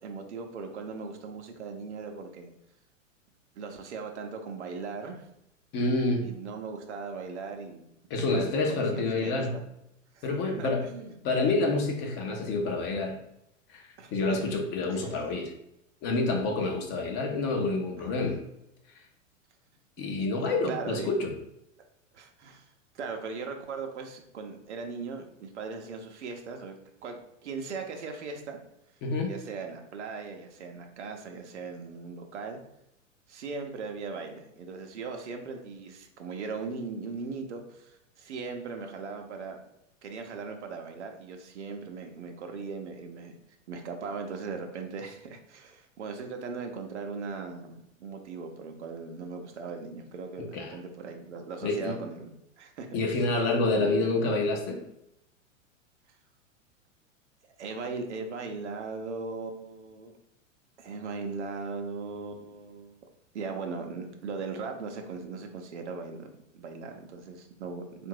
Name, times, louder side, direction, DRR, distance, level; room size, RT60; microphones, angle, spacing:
voice 1, 0.0-2.5 3.6-5.3 6.2-7.8 8.1-9.6 10.1-10.2 10.6-11.1 14.0-14.6 14.9-15.2 18.0-18.1 20.2-21.1 21.8-21.9 22.1-22.7 22.9-26.7 27.0-28.6 29.3-32.6 33.3-39.6 40.0-43.3 43.7-52.9 53.7-54.1 57.6-60.1 60.8-62.9 63.3-68.1, right 4 dB, 60° right, 4 dB, 0.8 m, -39 dB
voice 2, 5.7-6.2 8.1-9.5 10.2-10.9 11.2-13.2 13.7-13.8 14.1-15.5 16.0-18.4 20.0-21.3 29.0-29.3 50.4-50.8 51.6-52.0 52.9-54.8, left 3 dB, 30° left, 2 dB, 0.7 m, -28 dB
3.6 x 2.5 x 4.6 m, 0.81 s
figure-of-eight pair, 95°, 39 cm